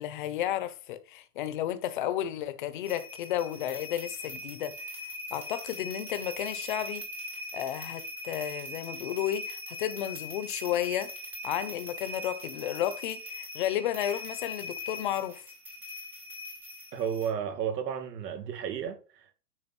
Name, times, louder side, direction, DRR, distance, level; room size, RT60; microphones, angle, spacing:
voice 1, 0.0-4.7 5.3-7.1 7.5-11.1 11.4-15.4, left 11 dB, 30° left, 0.8 m, -32 dB
sound 1, 2.9-17.3, left 1 dB, 5° right, 0.7 m, -41 dB
voice 2, 16.9-19.3, right 8 dB, 85° right, 2.6 m, -33 dB
8.9 x 5.5 x 5.9 m
supercardioid pair, 175°, 47 cm